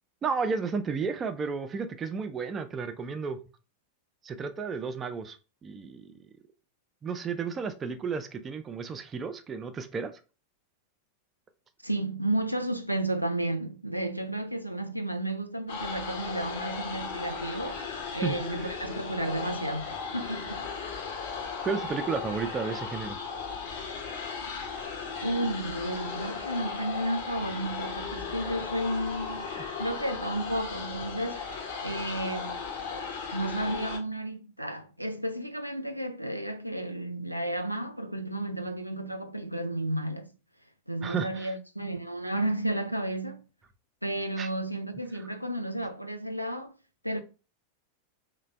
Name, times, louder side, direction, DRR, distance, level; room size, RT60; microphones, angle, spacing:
voice 1, 0.2-3.4 4.2-5.4 5.6-6.1 7.0-10.1 18.2-18.4 21.6-23.2 29.6-29.7 41.0-41.5 44.4-44.5, right 5 dB, 20° right, 0.4 m, -32 dB
voice 2, 11.8-17.8 18.1-20.7 25.2-29.5 29.8-31.4 31.8-32.6 33.3-40.3 40.9-43.4 44.0-46.7 47.0-47.2, right 1 dB, 90° right, 0.4 m, -32 dB
sound 1, 15.7-34.0, left 5 dB, 55° left, 0.8 m, -36 dB
3.2 x 2.2 x 4.2 m
figure-of-eight pair, 90°, 0 cm